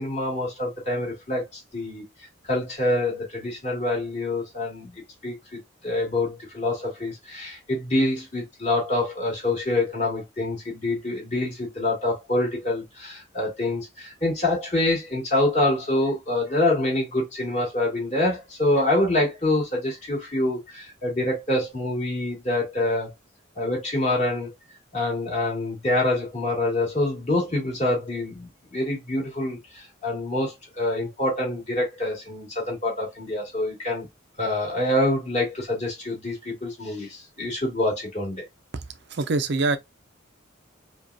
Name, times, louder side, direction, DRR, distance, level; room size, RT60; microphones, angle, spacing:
voice 1, 0.0-2.0 2.5-4.9 5.2-23.1 23.6-24.5 24.9-34.1 34.4-38.4, left 1 dB, 35° left, 2.5 m, -26 dB
voice 2, 39.1-39.8, right 3 dB, 60° right, 0.6 m, -24 dB
5.0 x 2.4 x 2.7 m
head